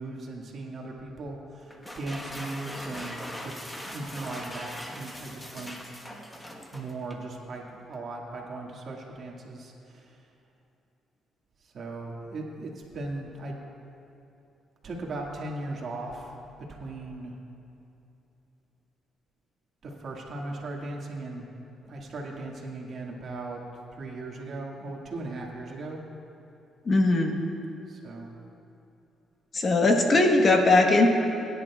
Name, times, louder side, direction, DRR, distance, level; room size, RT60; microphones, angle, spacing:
voice 1, 0.0-1.7 2.0-3.6 3.9-5.8 6.7-10.0 11.7-13.6 14.8-16.3 16.6-17.3 19.8-21.5 21.9-23.6 24.0-26.0 27.9-28.3, right 2 dB, 55° right, -1 dB, 2.0 m, -38 dB
sound 1, 1.7-7.3, equal, 10° left, 1.2 m, -40 dB
voice 2, 26.9-27.4 29.5-31.1, left 2 dB, 40° left, 2 dB, 1.3 m, -20 dB
21.5 x 10.5 x 2.4 m, 2.9 s
cardioid pair, 90°, 0 cm